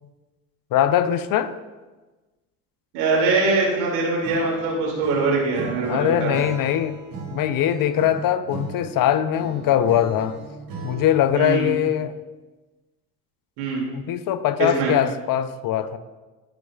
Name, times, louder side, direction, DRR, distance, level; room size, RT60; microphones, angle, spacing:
voice 1, 0.7-1.5 5.9-7.0 7.3-10.4 10.8-12.1 13.9-16.0, left 10 dB, 55° left, 12 dB, 0.6 m, -21 dB
voice 2, 2.9-6.4 11.3-11.7 13.6-13.8 14.6-14.9, right 3 dB, 75° right, -3 dB, 2.6 m, -22 dB
Acoustic guitar / Strum, 4.2-11.4, right 4 dB, 55° right, 2.1 m, -37 dB
15.0 x 5.1 x 2.4 m, 1.2 s
hypercardioid pair, 55°, 42 cm